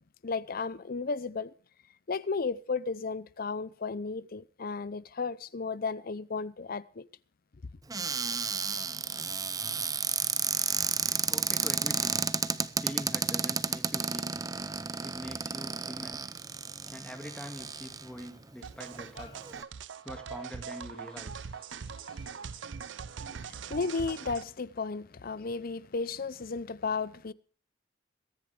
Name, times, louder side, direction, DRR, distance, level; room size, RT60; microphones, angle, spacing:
voice 1, 0.2-1.5 2.1-7.0 23.3-27.3, left 4 dB, 50° left, 0.6 m, -34 dB
Cupboard open or close, 7.9-18.3 18.9-19.0 19.3-19.6, right 5 dB, 20° right, 0.6 m, -32 dB
voice 2, 11.1-12.2 12.8-14.3 15.0-16.3 16.9-19.4 20.0-21.4, equal, 5° left, 2.0 m, -44 dB
sound 1, 14.5-24.5, left 4 dB, 35° left, 3.7 m, -61 dB
sound 2, 18.6-24.4, right 6 dB, 75° right, 0.5 m, -42 dB
22.5 x 10.5 x 3.3 m
head